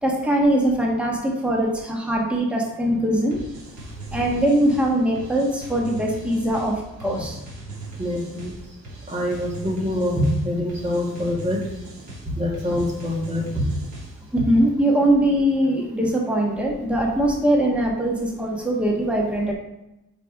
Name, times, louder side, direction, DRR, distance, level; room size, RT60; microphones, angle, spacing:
voice 1, 0.0-3.4 4.1-7.4 14.3-19.5, right 1 dB, 5° right, -1 dB, 1.3 m, -21 dB
sound 1, 3.3-14.4, right 2 dB, 75° right, 2.3 m, -39 dB
voice 2, 8.0-8.5 9.1-11.6 12.4-13.6, left 1 dB, 20° right, -2 dB, 2.0 m, -25 dB
5.2 x 4.4 x 4.9 m, 0.93 s
cardioid pair, 90°, 30 cm